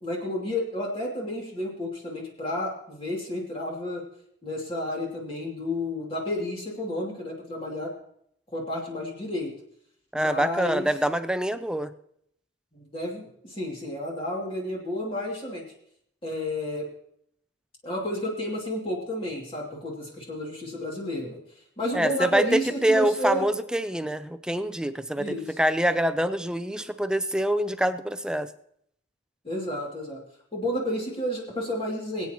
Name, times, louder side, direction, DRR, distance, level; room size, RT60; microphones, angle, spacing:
voice 1, 0.0-4.0 4.4-7.9 8.5-9.5 10.1-10.9 12.7-15.6 16.2-16.9 17.8-21.4 21.8-23.5 25.2-25.6 29.4-30.2 30.5-32.3, left 1 dB, 30° left, -2 dB, 2.6 m, -31 dB
voice 2, 10.1-11.9 21.9-28.5, right 1 dB, 5° right, 12 dB, 0.5 m, -25 dB
23.0 x 8.6 x 3.0 m, 0.69 s
head